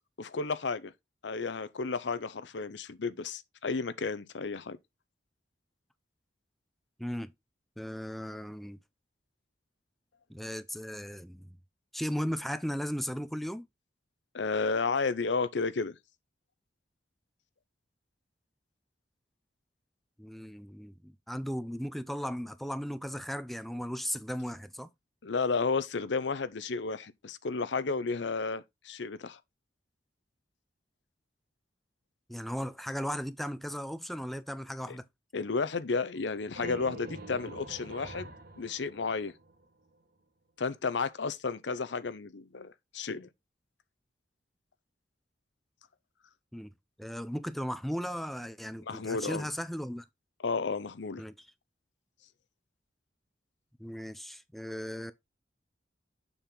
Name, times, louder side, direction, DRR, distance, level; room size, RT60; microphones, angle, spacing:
voice 1, 0.2-0.9 1.2-4.8 14.3-16.0 25.2-29.4 34.9-35.0 35.3-38.3 38.6-39.3 40.6-43.3 48.9-49.5 50.4-51.2, left 4 dB, 80° left, 0.7 m, -32 dB
voice 2, 7.0-7.3 7.8-8.8 10.3-11.6 11.9-13.7 20.2-24.9 32.3-35.0 46.5-46.7 47.0-50.0 51.2-51.5 53.8-55.1, equal, ahead, 0.4 m, -36 dB
sound 1, 36.1-39.8, right 2 dB, 55° right, 1.5 m, -46 dB
7.1 x 5.4 x 3.8 m
head